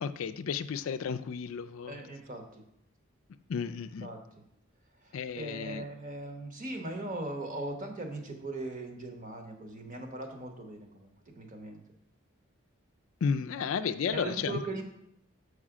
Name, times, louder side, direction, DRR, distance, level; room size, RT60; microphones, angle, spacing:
voice 1, 0.0-2.0 3.5-4.1 5.1-5.8 13.2-14.6, left 6 dB, 75° left, 9 dB, 0.4 m, -33 dB
voice 2, 1.8-2.6 4.0-4.2 5.0-11.8 14.1-14.8, right 2 dB, 35° right, 3 dB, 1.0 m, -39 dB
7.4 x 4.9 x 4.9 m, 0.75 s
head